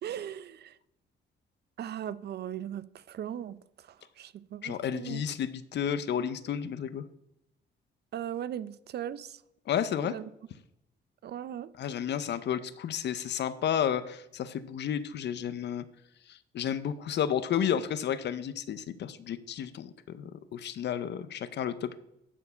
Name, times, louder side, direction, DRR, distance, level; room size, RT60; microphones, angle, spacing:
voice 1, 0.0-0.8 1.8-5.2 8.1-9.4 10.0-10.2 11.2-11.7, right 10 dB, 55° right, 0.5 m, -38 dB
voice 2, 4.6-7.0 9.7-10.1 11.8-15.8 16.3-22.0, left 9 dB, 60° left, 0.6 m, -32 dB
11.0 x 4.5 x 5.6 m
cardioid pair, 90°, 20 cm